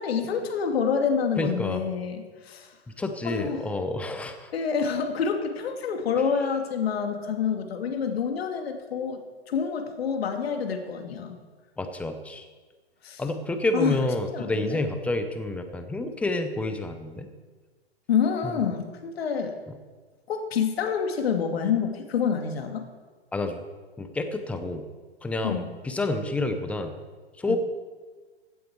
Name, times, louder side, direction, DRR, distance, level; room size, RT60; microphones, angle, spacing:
voice 1, 0.0-2.7 3.2-3.6 4.5-9.2 9.5-11.4 13.0-13.2 13.7-14.0 14.3-14.8 18.1-19.6 20.3-22.9 25.4-25.7 27.5-27.6, left 6 dB, 65° left, 5 dB, 2.2 m, -27 dB
voice 2, 1.4-1.8 3.0-4.5 11.8-12.5 13.2-17.3 18.4-18.6 23.3-23.6 24.0-24.9 25.2-27.0 27.4-27.6, left 2 dB, 5° left, 7 dB, 0.6 m, -29 dB
16.0 x 8.5 x 4.6 m, 1.4 s
hypercardioid pair, 135°, 33 cm